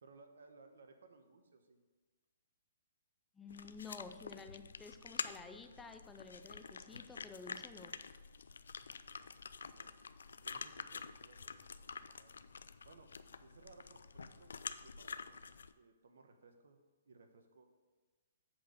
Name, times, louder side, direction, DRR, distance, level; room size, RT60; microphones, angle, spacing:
voice 1, 0.0-1.8 9.7-9.9 10.4-12.4 12.8-15.4 15.7-17.6, right 3 dB, 80° right, 6 dB, 1.1 m, -62 dB
voice 2, 3.3-7.9, left 4 dB, 10° left, 7 dB, 0.4 m, -52 dB
sound 1, 3.5-15.7, left 5 dB, 85° left, 0.4 m, -48 dB
7.9 x 4.5 x 6.4 m, 1.3 s
hypercardioid pair, 150°, 0 cm